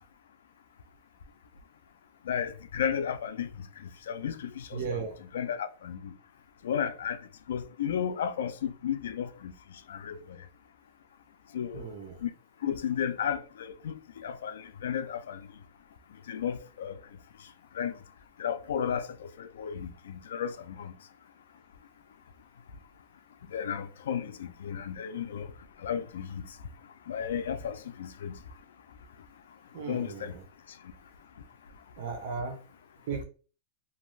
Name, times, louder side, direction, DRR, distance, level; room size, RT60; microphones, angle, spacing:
voice 1, 2.3-3.5 4.1-5.1 5.3-6.0 6.6-7.2 7.5-9.5 9.9-10.1 11.5-11.9 12.2-12.3 12.6-13.9 14.2-15.4 16.3-17.0 17.8-17.9 18.4-19.1 19.4-20.5 20.8-20.9 23.5-25.5 25.8-26.4 27.1-28.3 29.9-30.3, left 8 dB, 90° left, 0.3 m, -33 dB
voice 2, 4.7-5.2 11.7-12.2 29.7-30.4 32.0-32.6 33.1-33.2, right 6 dB, 55° right, 0.7 m, -36 dB
2.5 x 2.3 x 3.1 m
supercardioid pair, 150°, 0 cm